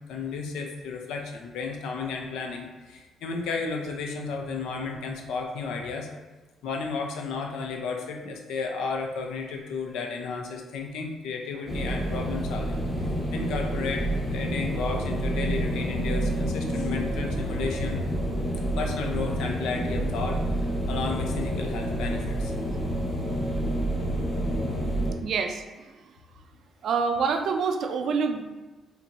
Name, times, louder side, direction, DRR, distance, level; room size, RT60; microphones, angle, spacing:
voice 1, 0.1-6.1 6.6-12.8 13.3-18.0 18.8-20.4 20.9-22.5, left 4 dB, 90° left, 2 dB, 0.5 m, -33 dB
sound 1, 11.7-25.1, right 1 dB, 35° left, 1.0 m, -28 dB
voice 2, 25.2-25.9 26.8-28.4, right 5 dB, 65° right, 6 dB, 0.4 m, -26 dB
4.2 x 2.6 x 2.8 m, 1.2 s
cardioid pair, 90°, 0 cm